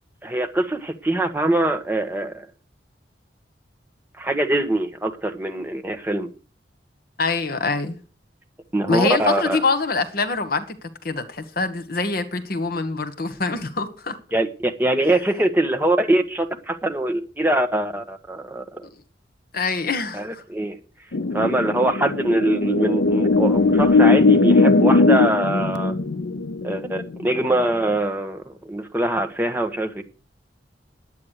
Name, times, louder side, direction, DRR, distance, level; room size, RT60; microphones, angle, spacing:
voice 1, 0.2-2.5 4.2-6.3 8.7-9.6 14.3-18.9 20.1-20.8 21.3-25.9 26.6-30.0, right 1 dB, 10° right, 1.2 m, -23 dB
voice 2, 7.2-8.0 8.9-10.8 11.0-14.2 19.5-20.4, left 3 dB, 55° left, 1.4 m, -24 dB
sound 1, 21.1-28.0, left 3 dB, 85° left, 0.7 m, -19 dB
10.5 x 8.6 x 6.6 m
head